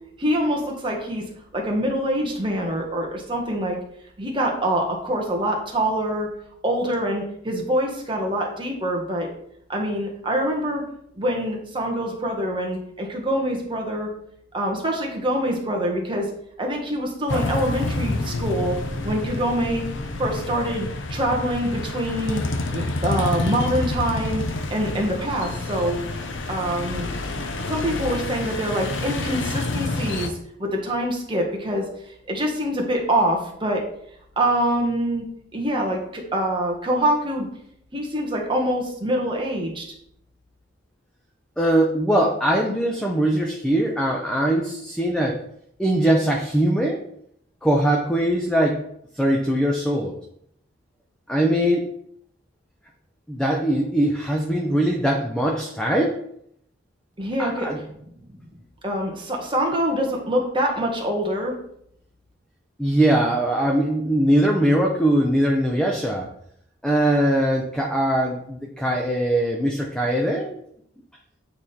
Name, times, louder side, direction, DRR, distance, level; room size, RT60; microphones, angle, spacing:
voice 1, 0.2-1.3 1.5-3.8 4.2-6.3 6.6-9.3 9.7-10.8 11.1-14.1 14.5-16.3 16.6-18.8 19.0-19.9 20.2-22.4 22.7-26.0 26.5-27.1 27.7-33.9 34.4-35.3 35.5-37.5 37.9-39.9 57.2-57.7 58.8-61.5, right 1 dB, 25° right, 0 dB, 1.3 m, -25 dB
sound 1, 17.3-30.3, left 2 dB, 70° left, 0.7 m, -28 dB
voice 2, 41.6-45.4 45.8-47.0 47.6-48.8 49.1-50.1 51.3-51.8 53.3-56.2 57.4-57.8 62.8-66.3 66.8-70.6, right 1 dB, 5° left, -1 dB, 0.6 m, -21 dB
8.5 x 3.5 x 4.3 m, 0.72 s
head